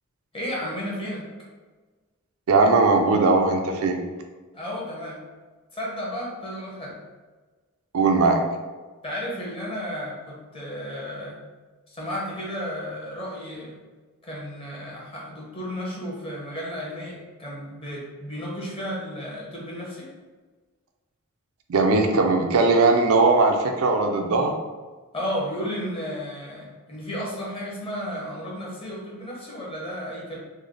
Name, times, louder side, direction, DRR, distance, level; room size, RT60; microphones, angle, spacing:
voice 1, 0.3-1.3 4.5-5.2 5.7-7.0 9.0-11.4 11.9-13.8 14.2-20.1 25.1-30.4, equal, 25° left, -4 dB, 0.9 m, -33 dB
voice 2, 2.5-4.0 7.9-8.4 21.7-24.5, right 3 dB, 75° right, 3 dB, 0.4 m, -19 dB
3.3 x 2.1 x 3.7 m, 1.3 s
head